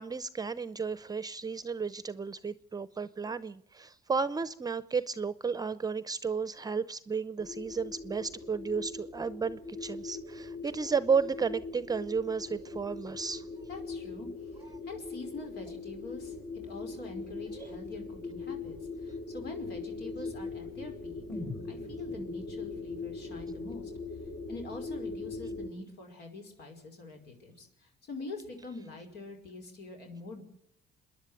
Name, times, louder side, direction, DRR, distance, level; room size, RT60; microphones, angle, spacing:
voice 1, 0.0-13.4 17.6-17.8, right 5 dB, 20° right, 15 dB, 0.7 m, -33 dB
sound 1, 7.4-25.7, left 3 dB, 50° left, 3.0 m, -41 dB
voice 2, 13.7-21.4 21.7-23.9 24.5-30.4, left 3 dB, 75° left, 4 dB, 5.2 m, -45 dB
sound 2, 21.3-25.3 25.6-25.7, left 2 dB, 30° left, 4.8 m, -47 dB
27.0 x 10.5 x 9.3 m, 0.71 s
cardioid pair, 110°, 17 cm